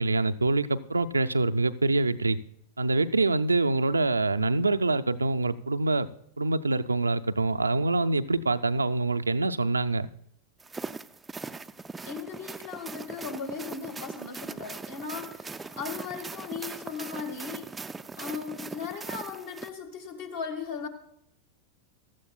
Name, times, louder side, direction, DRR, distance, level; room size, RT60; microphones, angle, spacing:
voice 1, 0.0-2.4 2.8-6.1 6.4-10.1, right 3 dB, 80° right, 9 dB, 0.5 m, -25 dB
sound 1, 10.6-19.7, right 4 dB, 10° right, 0.4 m, -40 dB
voice 2, 12.1-17.7 18.2-20.9, left 6 dB, 55° left, 4 dB, 2.0 m, -37 dB
16.0 x 13.0 x 2.3 m, 0.72 s
figure-of-eight pair, 90°, 0 cm